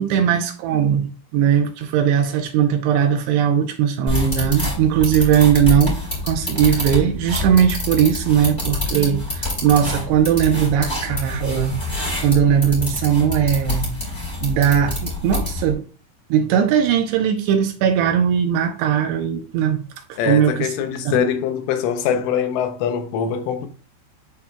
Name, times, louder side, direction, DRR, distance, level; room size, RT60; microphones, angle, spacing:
voice 1, 0.0-6.0 6.2-12.0 12.2-13.9 14.4-15.8 16.3-19.8 20.1-20.7 21.1-21.2, right 8 dB, 80° right, 2.7 m, -19 dB
sound 1, 4.1-15.7, left 2 dB, 10° left, 3.0 m, -26 dB
voice 2, 20.2-23.7, left 8 dB, 85° left, 3.0 m, -23 dB
11.5 x 4.3 x 2.3 m
omnidirectional pair, 5.1 m